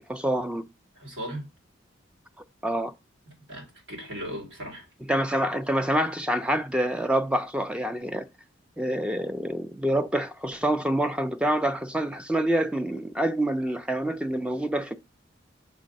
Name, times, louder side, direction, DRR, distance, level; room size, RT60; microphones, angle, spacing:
voice 1, 0.1-0.6 2.6-2.9 5.1-8.3 8.8-15.0, right 1 dB, 5° right, 0.4 m, -26 dB
voice 2, 1.0-1.5 3.3-4.9, equal, 70° right, 3.3 m, -37 dB
6.7 x 3.7 x 5.3 m
head